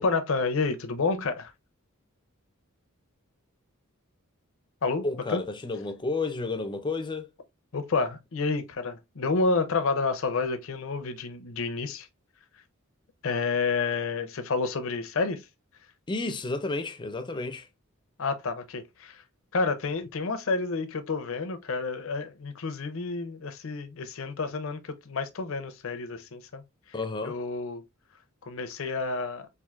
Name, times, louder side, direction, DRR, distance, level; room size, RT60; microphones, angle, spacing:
voice 1, 0.0-1.5 4.8-5.4 7.7-12.1 12.5-12.6 13.2-15.5 18.2-19.2 19.5-27.8 28.4-29.5, left 4 dB, 65° left, 0.6 m, -30 dB
voice 2, 5.0-7.3 16.1-17.7 26.9-27.4, left 3 dB, 20° left, 0.5 m, -31 dB
4.5 x 2.6 x 2.4 m
head